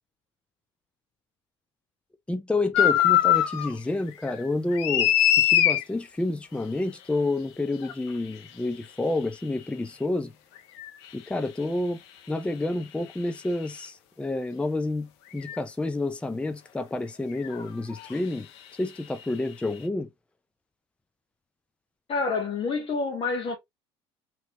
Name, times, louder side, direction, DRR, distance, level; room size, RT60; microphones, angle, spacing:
voice 1, 2.3-10.3 11.1-12.0 12.3-18.5 18.8-20.1, left 2 dB, 10° left, 0.5 m, -29 dB
sound 1, 2.7-3.7 4.1-5.8 7.8-7.9 10.8-10.9 13.6-13.7 15.4-15.6 17.4-17.6 17.9-18.1, left 12 dB, 70° left, 0.6 m, -22 dB
voice 2, 22.1-23.6, left 4 dB, 40° left, 1.3 m, -28 dB
3.1 x 2.9 x 2.9 m
hypercardioid pair, 65°, 15 cm